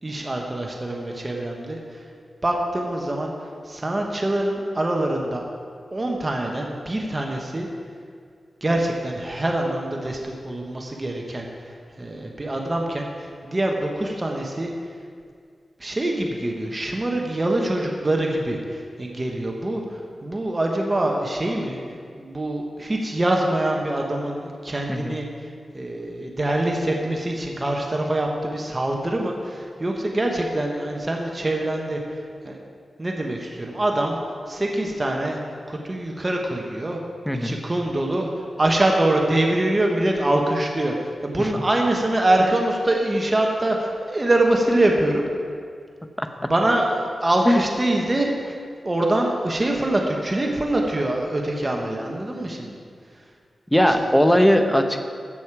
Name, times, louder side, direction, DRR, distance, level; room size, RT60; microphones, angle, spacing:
voice 1, 0.0-2.0 2.4-3.3 3.6-5.4 5.9-7.7 8.6-14.7 15.8-25.5 25.7-32.6 33.0-34.2 34.5-35.4 35.7-37.0 37.4-45.2 46.5-48.6 48.8-52.8 53.8-54.1, right 1 dB, 30° right, 1 dB, 1.3 m, -24 dB
voice 2, 53.7-55.0, equal, 5° left, 6 dB, 1.0 m, -18 dB
15.0 x 6.5 x 4.9 m, 2.2 s
cardioid pair, 55°, 0 cm